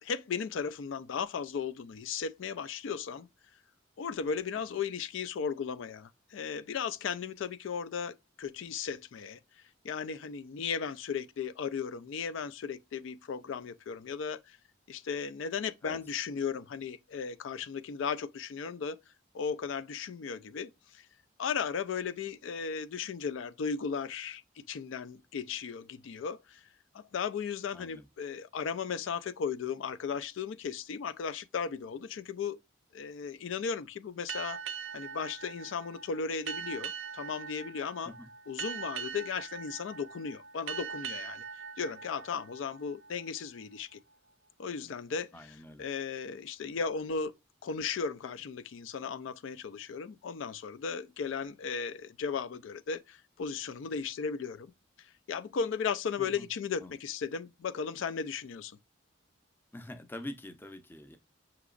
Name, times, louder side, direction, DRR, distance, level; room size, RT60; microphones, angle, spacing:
voice 1, 0.0-3.3 4.0-9.4 9.8-14.6 14.9-19.0 19.3-21.1 21.4-26.7 26.9-32.6 32.9-34.6 34.9-38.1 38.5-44.0 44.6-45.3 45.8-47.3 47.6-54.7 55.0-58.8, left 6 dB, 75° left, 0.4 m, -36 dB
voice 2, 27.7-28.1 38.0-38.3 45.3-45.8 56.2-56.5 56.8-56.9 59.7-61.2, left 1 dB, 10° left, 0.5 m, -45 dB
sound 1, 34.3-43.4, right 7 dB, 70° right, 0.3 m, -42 dB
5.9 x 2.9 x 2.4 m
head